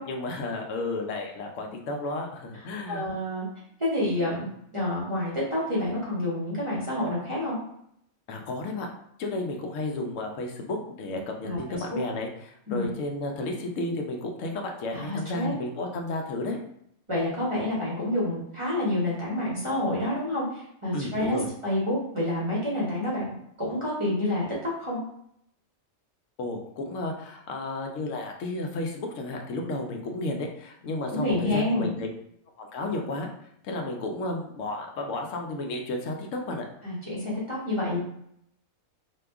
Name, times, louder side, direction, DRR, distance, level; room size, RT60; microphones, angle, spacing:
voice 1, 0.1-3.0 8.3-8.9 9.2-16.6 20.9-21.5 26.4-32.1 32.6-33.3 33.6-36.6, left 2 dB, 75° left, 2 dB, 1.0 m, -32 dB
voice 2, 2.9-3.5 3.8-4.5 4.7-7.6 11.4-12.0 12.7-12.8 14.9-15.5 17.1-23.3 23.6-25.0 31.1-31.9 36.8-38.0, left 1 dB, 25° right, -8 dB, 0.8 m, -28 dB
2.8 x 2.3 x 3.4 m, 0.73 s
omnidirectional pair, 1.4 m